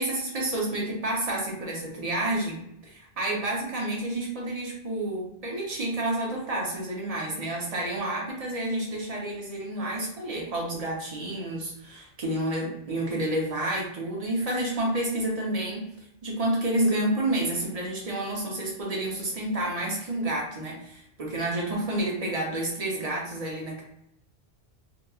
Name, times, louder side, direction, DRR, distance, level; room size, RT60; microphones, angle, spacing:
voice 1, 0.0-15.9 16.2-23.8, right 1 dB, 40° right, -2 dB, 0.8 m, -29 dB
2.8 x 2.3 x 2.3 m, 0.75 s
omnidirectional pair, 1.1 m